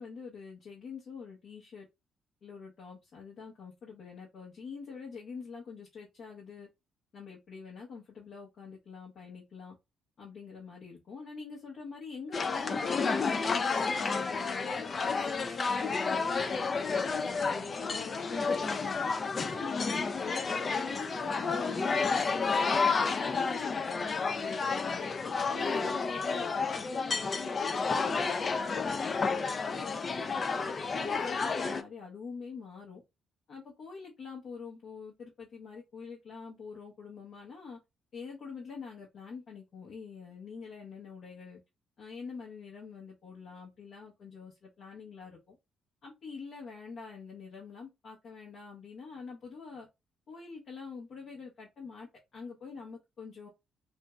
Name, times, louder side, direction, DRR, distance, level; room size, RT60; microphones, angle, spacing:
voice 1, 0.0-1.9 2.4-6.7 7.1-9.8 10.2-14.7 15.1-18.9 19.3-25.1 25.5-27.9 28.4-33.0 33.5-37.8 38.1-41.6 42.0-45.6 46.0-49.9 50.3-53.5, left 5 dB, 60° left, 0.9 m, -45 dB
sound 1, 12.3-31.8, left 4 dB, 40° left, 0.3 m, -31 dB
3.1 x 2.5 x 2.2 m
cardioid pair, 90°, 0 cm